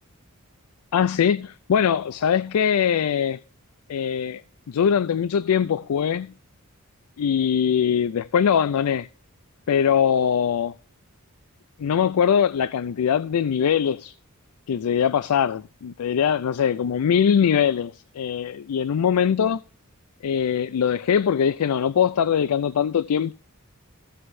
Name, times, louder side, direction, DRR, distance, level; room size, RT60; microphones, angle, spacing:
voice 1, 0.9-3.4 3.9-4.4 4.7-6.3 7.2-9.1 9.7-10.7 11.8-14.1 14.7-19.6 20.2-23.3, left 8 dB, 85° left, 0.4 m, -22 dB
15.5 x 7.7 x 2.6 m
head